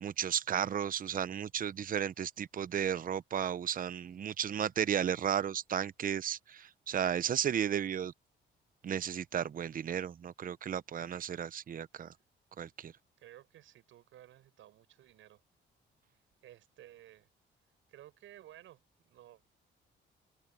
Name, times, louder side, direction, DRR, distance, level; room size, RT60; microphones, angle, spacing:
voice 1, 0.0-8.1 8.8-12.1 12.6-12.9, right 9 dB, 45° right, 0.8 m, -34 dB
voice 2, 11.0-11.3 13.2-15.4 16.4-17.3 17.9-19.5, right 13 dB, 80° right, 7.7 m, -56 dB
open air
cardioid pair, 90°, 20 cm